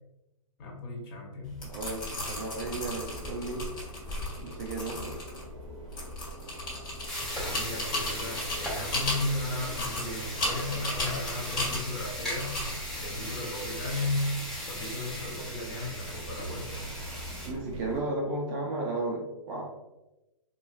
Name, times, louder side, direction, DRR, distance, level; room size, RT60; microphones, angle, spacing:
voice 1, 0.6-1.6 7.3-12.6 12.9-16.9, left 2 dB, 40° left, -1 dB, 0.9 m, -35 dB
sound 1, 1.4-14.2, left 1 dB, 20° left, 1.4 m, -36 dB
voice 2, 1.6-3.7 4.4-5.3 5.9-6.1 17.5-19.7, right 2 dB, 20° right, -1 dB, 0.4 m, -34 dB
sound 2, 2.8-18.0, right 2 dB, 55° right, 0.8 m, -44 dB
sound 3, 7.1-17.5, equal, ahead, 0.8 m, -38 dB
4.3 x 2.3 x 2.5 m, 0.98 s
hypercardioid pair, 140°, 18 cm